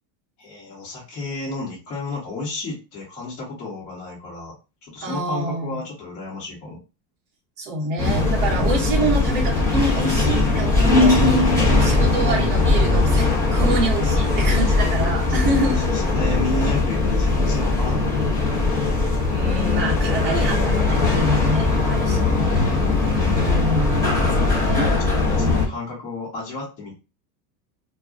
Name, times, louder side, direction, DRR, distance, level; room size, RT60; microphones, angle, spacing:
voice 1, 0.4-4.6 4.8-6.8 8.4-8.9 15.5-18.2 22.1-23.2 24.1-27.0, left 3 dB, 30° left, -6 dB, 1.1 m, -32 dB
voice 2, 5.0-5.8 7.6-15.9 17.7-17.9 18.5-18.7 19.3-22.7 23.0-24.1 24.4-25.0, right 2 dB, 20° right, -2 dB, 0.7 m, -27 dB
sound 1, 8.0-25.7, left 3 dB, 5° left, 0.9 m, -20 dB
2.3 x 2.0 x 3.5 m, 0.29 s
supercardioid pair, 170°, 50 cm